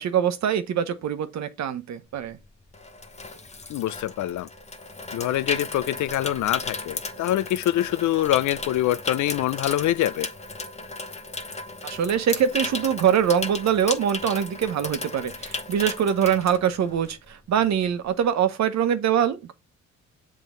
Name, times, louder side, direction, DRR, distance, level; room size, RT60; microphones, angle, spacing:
voice 1, 0.0-2.4 11.8-19.5, right 8 dB, 65° right, 1.1 m, -23 dB
Water tap faucet / Sink (filling or washing), 2.2-17.3 17.6-17.8, left 3 dB, 20° left, 1.1 m, -35 dB
voice 2, 3.7-4.5 5.1-10.3, left 13 dB, 70° left, 0.6 m, -25 dB
7.3 x 3.8 x 3.8 m
cardioid pair, 90°, 30 cm